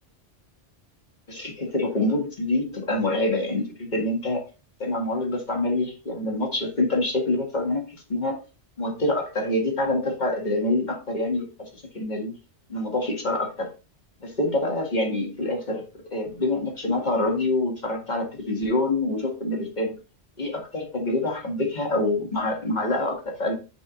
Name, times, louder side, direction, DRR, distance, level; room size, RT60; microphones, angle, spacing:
voice 1, 1.3-4.4 4.8-8.4 8.8-12.3 12.7-13.7 14.2-15.8 16.1-19.9 20.4-23.5, left 2 dB, 40° left, 1 dB, 2.0 m, -26 dB
9.5 x 5.0 x 2.5 m, 0.32 s
omnidirectional pair, 1.2 m